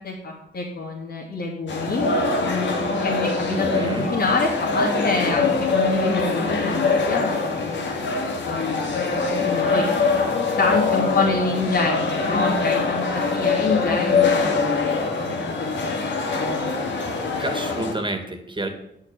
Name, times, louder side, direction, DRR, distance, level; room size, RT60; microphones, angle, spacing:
voice 1, 0.0-2.0 3.0-8.0 8.4-8.8 9.1-9.9 10.6-16.7, left 3 dB, 65° left, -3 dB, 2.5 m, -27 dB
sound 1, 1.7-17.9, left 4 dB, 90° left, 2.3 m, -23 dB
voice 2, 3.5-4.1 17.4-18.7, right 2 dB, 25° right, 6 dB, 2.4 m, -29 dB
10.5 x 6.7 x 9.0 m, 0.79 s
cardioid pair, 75°, 19 cm